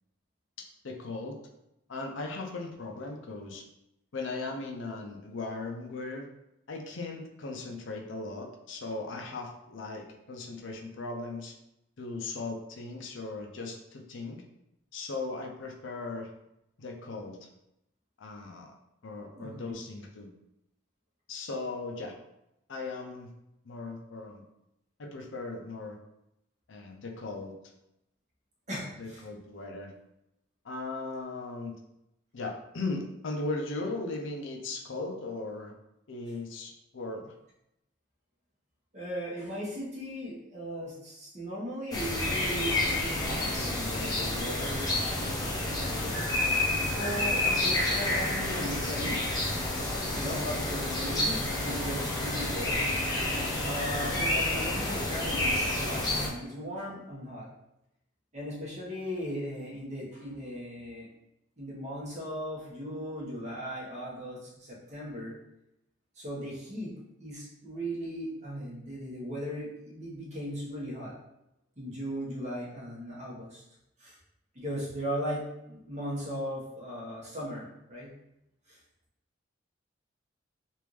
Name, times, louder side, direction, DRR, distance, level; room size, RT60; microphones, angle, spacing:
voice 1, 0.6-1.4 1.9-3.6 4.1-6.3 6.7-11.5 12.0-14.4 14.9-16.3 16.8-17.5 18.2-18.7 19.0-20.3 21.3-22.1 22.7-23.3 23.6-24.4 25.0-26.0 26.7-27.6 29.0-29.9 30.6-31.8 32.3-35.7 36.1-37.3, left 3 dB, 65° left, 2 dB, 0.5 m, -38 dB
voice 2, 19.3-19.7 28.7-29.2 38.9-46.2 46.7-49.3 50.1-52.8 53.6-57.5 58.3-61.1 61.6-65.3 66.1-71.1 71.8-73.6 74.0-74.2 74.5-78.1 78.7-78.8, equal, 35° right, -6 dB, 1.1 m, -38 dB
sound 1, 41.9-56.3, left 1 dB, 20° left, 0.5 m, -29 dB
3.4 x 2.5 x 3.1 m, 0.86 s
head